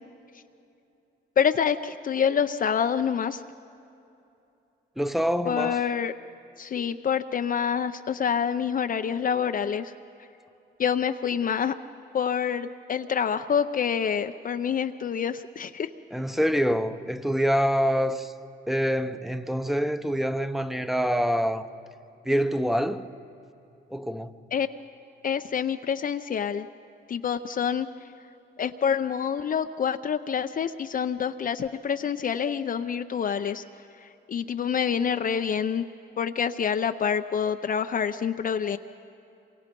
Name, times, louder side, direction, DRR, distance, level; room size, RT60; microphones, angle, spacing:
voice 1, 1.4-3.4 5.5-6.1 6.6-9.9 10.8-11.7 12.1-15.9 24.5-24.7 25.2-26.7 27.1-27.9 28.6-33.6 34.0-35.8 36.2-38.8, left 7 dB, 45° left, 0.6 m, -27 dB
voice 2, 5.0-5.8 16.1-18.3 18.7-21.7 22.2-23.1 23.9-24.3, equal, ahead, 0.9 m, -25 dB
27.0 x 24.0 x 5.3 m
cardioid pair, 90°, 20 cm